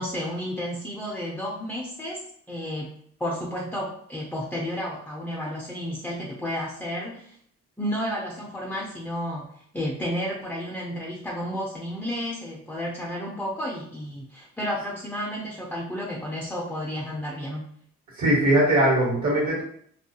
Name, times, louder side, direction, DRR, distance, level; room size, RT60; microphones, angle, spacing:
voice 1, 0.0-2.9 3.2-7.4 7.8-9.5 9.7-17.7, equal, 5° left, -3 dB, 0.4 m, -32 dB
voice 2, 18.1-19.6, right 1 dB, 70° right, -3 dB, 1.1 m, -20 dB
2.3 x 2.2 x 2.7 m, 0.64 s
cardioid pair, 90°, 30 cm